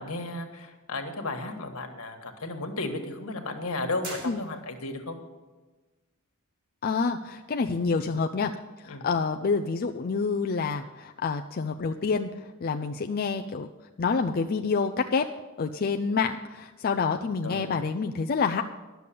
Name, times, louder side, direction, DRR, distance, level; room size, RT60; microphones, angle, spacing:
voice 1, 0.0-5.2 8.9-9.1 17.4-17.7, left 2 dB, 75° left, 4 dB, 1.6 m, -34 dB
sound 1, 4.0-5.0, right 2 dB, 45° right, 2.6 m, -42 dB
voice 2, 6.8-8.5 8.8-13.7 14.0-15.3 15.6-18.6, left 5 dB, 45° left, 4 dB, 0.4 m, -28 dB
11.5 x 6.9 x 8.4 m, 1.2 s
head